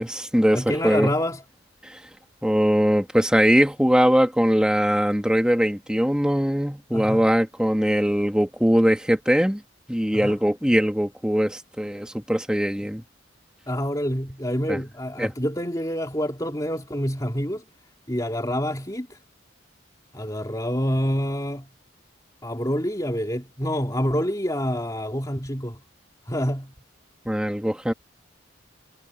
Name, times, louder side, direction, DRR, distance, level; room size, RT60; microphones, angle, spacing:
voice 1, 0.0-1.1 1.8-2.0 2.4-9.6 9.9-13.0 14.7-14.8 15.2-15.3 27.3-27.9, equal, 5° right, 1.9 m, -21 dB
voice 2, 0.5-1.4 6.9-7.3 10.2-10.4 13.7-17.6 18.1-19.2 20.1-21.7 22.4-25.8 26.3-26.7, equal, 15° left, 3.1 m, -27 dB
head